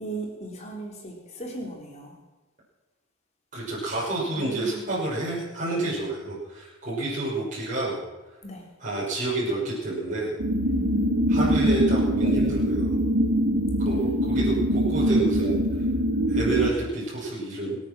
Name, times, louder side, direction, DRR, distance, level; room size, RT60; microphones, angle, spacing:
voice 1, 0.0-2.1 4.3-4.8 8.4-8.6 10.7-11.3, right 1 dB, 30° left, 0 dB, 3.4 m, -37 dB
voice 2, 3.5-8.0 8.8-10.3 11.3-13.0 13.8-15.6 16.3-17.8, right 2 dB, 35° right, -7 dB, 5.7 m, -29 dB
sound 1, 10.4-16.7, equal, 65° right, 1.7 m, -23 dB
25.0 x 8.7 x 6.1 m, 1.2 s
head